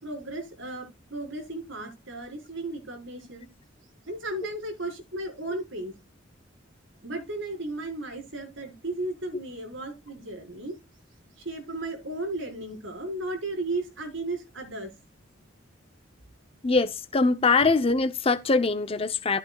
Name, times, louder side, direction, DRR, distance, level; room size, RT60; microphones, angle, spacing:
voice 1, 0.0-3.5 4.1-6.0 7.0-10.8 11.3-14.9, right 2 dB, 80° right, 4.8 m, -35 dB
voice 2, 16.6-19.4, left 3 dB, 30° left, 0.7 m, -23 dB
14.5 x 8.7 x 2.3 m
head